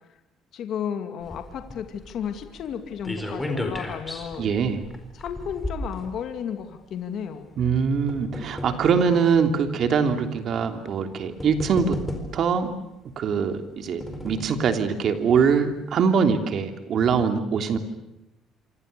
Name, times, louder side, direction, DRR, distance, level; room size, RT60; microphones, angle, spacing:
voice 1, 0.5-4.5 5.1-7.5, left 8 dB, 50° left, 7 dB, 2.3 m, -33 dB
sound 1, 1.2-6.7 7.5-9.1 9.9-10.0 11.0-11.1 11.4-12.6 13.5-14.6 15.0-15.1 15.4-15.5, left 1 dB, 10° left, 4.4 m, -34 dB
voice 2, 4.4-4.8 7.6-12.0 12.3-12.7 13.2-17.8, right 6 dB, 45° right, 7 dB, 3.0 m, -23 dB
27.5 x 26.0 x 6.9 m, 0.92 s
cardioid pair, 155°, 0 cm